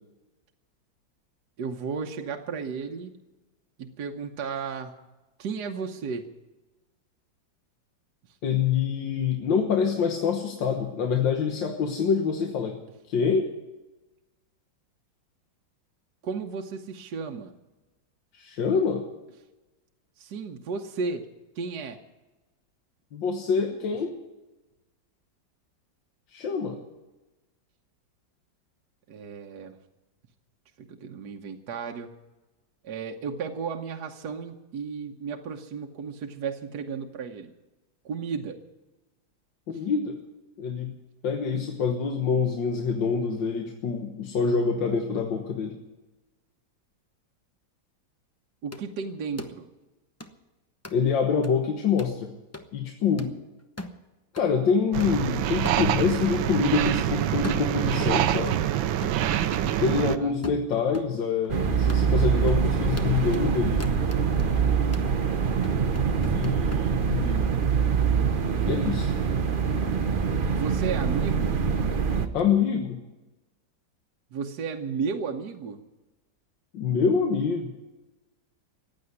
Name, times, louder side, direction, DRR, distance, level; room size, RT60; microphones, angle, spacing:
voice 1, 1.6-3.1 3.8-4.9 5.4-6.3 16.2-17.5 20.2-21.3 21.5-22.0 29.1-29.8 30.8-32.1 32.8-37.5 38.0-38.6 39.7-39.8 48.6-49.7 59.4-59.6 60.0-60.4 70.5-71.5 74.3-75.8, right 5 dB, 60° right, 3 dB, 1.5 m, -34 dB
voice 2, 8.4-12.8 13.1-13.5 18.3-19.0 23.1-24.1 26.3-26.8 39.7-40.2 40.6-40.9 41.2-45.8 50.9-52.3 52.7-53.3 54.3-58.6 59.8-63.9 66.3-67.5 68.6-69.1 72.3-73.0 76.7-77.7, left 6 dB, 75° left, 3 dB, 1.9 m, -26 dB
sound 1, 48.7-48.8 49.4-49.5 50.2-50.3 50.8-51.0 51.4-51.5 52.0-52.2 52.5-52.7 53.2-53.3 53.8-54.0 54.4-54.5 55.0-55.1 55.6-55.9 56.2-56.3 56.8-57.0 57.4-58.7 59.0-59.3 59.5-61.1 61.4-61.5 61.9-62.1 62.5-62.6 63.0-63.5 63.8-64.5 64.9-65.1 65.6-66.8, left 1 dB, 20° left, 0.4 m, -39 dB
sound 2, 54.9-60.2, right 11 dB, 85° right, 1.5 m, -25 dB
sound 3, 61.5-72.3, right 6 dB, 45° right, 0.7 m, -24 dB
15.5 x 9.8 x 9.6 m, 1.1 s
omnidirectional pair, 2.1 m